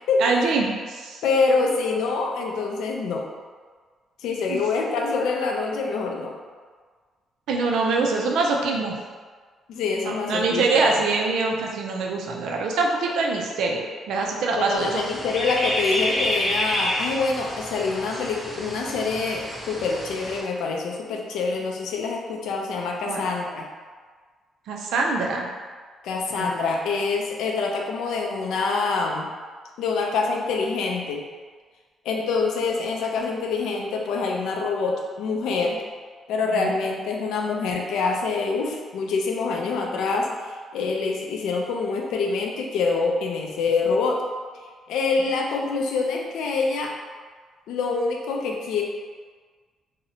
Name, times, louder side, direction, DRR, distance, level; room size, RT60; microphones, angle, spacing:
voice 1, 0.2-1.2 4.5-4.6 7.5-8.9 10.0-15.0 23.1-23.2 24.7-25.5 26.3-26.5 36.5-36.7, right 3 dB, 80° right, 0 dB, 0.3 m, -24 dB
voice 2, 1.2-3.2 4.2-6.3 9.7-10.7 14.6-23.7 26.0-29.3 29.8-31.2 32.0-35.8 36.3-40.3 40.7-44.2 44.9-46.9 47.7-48.8, left 4 dB, 85° left, 1 dB, 0.4 m, -25 dB
sound 1, 14.8-20.4, left 1 dB, ahead, 0.6 m, -29 dB
2.7 x 2.1 x 2.6 m, 1.5 s
cardioid pair, 145°, 0 cm